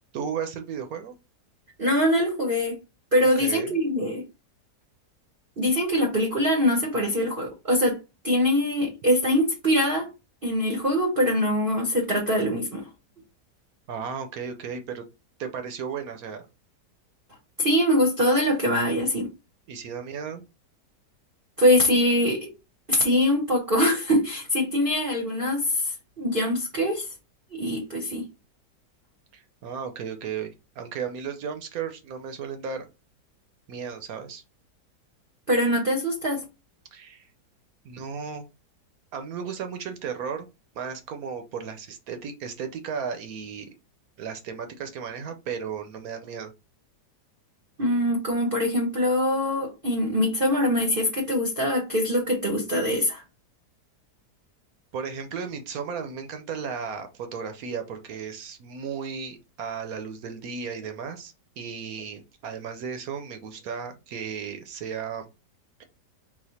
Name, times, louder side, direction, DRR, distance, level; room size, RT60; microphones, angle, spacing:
voice 1, 0.1-1.1 3.4-3.7 13.9-15.0 15.4-16.4 19.7-20.4 29.3-32.9 33.7-34.4 36.9-37.3 37.8-38.5 39.1-40.5 40.7-43.7 44.2-46.5 54.9-65.3, right 6 dB, 65° right, 1.0 m, -35 dB
voice 2, 1.8-2.8 3.1-4.2 5.6-8.0 8.2-10.1 10.4-12.9 17.6-19.3 21.6-22.5 22.9-27.1 27.6-28.2 35.5-36.4 47.8-53.2, left 1 dB, 40° right, 0.9 m, -23 dB
4.1 x 2.5 x 4.0 m
omnidirectional pair, 1.8 m